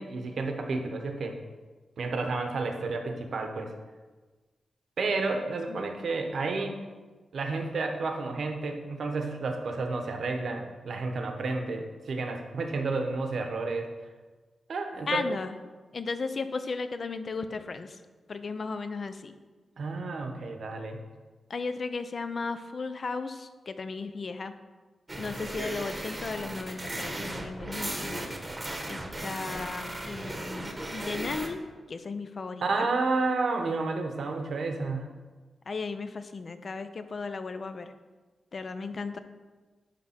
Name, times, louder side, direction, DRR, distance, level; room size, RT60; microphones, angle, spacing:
voice 1, 0.0-1.4 2.0-3.7 5.0-6.8 7.3-13.9 14.7-15.4 19.8-21.0 32.6-35.0, right 3 dB, 65° right, 4 dB, 1.0 m, -31 dB
voice 2, 15.1-15.5 15.9-18.0 18.3-19.3 21.5-24.5 25.2-28.3 28.8-31.6 31.9-32.9 35.7-37.9 38.5-39.2, left 4 dB, 45° left, 10 dB, 0.5 m, -35 dB
sound 1, 25.1-31.5, right 1 dB, 20° right, 1.0 m, -36 dB
10.0 x 3.5 x 5.7 m, 1.3 s
wide cardioid pair, 120°, 0 cm